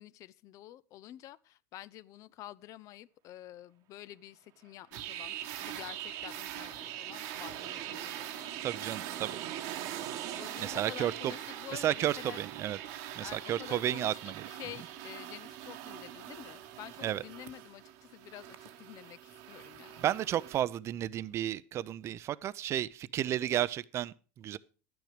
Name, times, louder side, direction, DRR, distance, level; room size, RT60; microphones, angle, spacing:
voice 1, 0.0-9.2 10.3-12.4 13.2-20.2, left 13 dB, 50° left, 0.6 m, -49 dB
sound 1, 4.8-16.2 16.6-16.7, right 12 dB, 55° right, 1.2 m, -46 dB
sound 2, 4.9-20.6, right 11 dB, 70° right, 1.4 m, -43 dB
voice 2, 8.6-9.3 10.6-11.3 11.7-12.8 13.1-14.4 17.0-17.2 20.0-24.6, right 12 dB, 40° right, 0.6 m, -32 dB
12.0 x 9.4 x 5.0 m
supercardioid pair, 120°, 7 cm